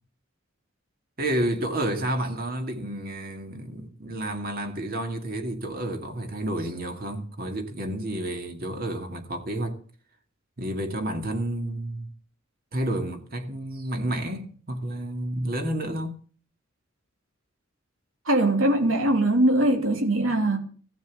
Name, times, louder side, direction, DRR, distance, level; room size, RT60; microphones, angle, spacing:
voice 1, 1.2-9.8 10.6-12.1 12.7-16.2, right 1 dB, 50° right, 2.2 m, -30 dB
voice 2, 18.2-20.6, right 1 dB, 85° right, 3.0 m, -21 dB
15.0 x 7.4 x 8.4 m
head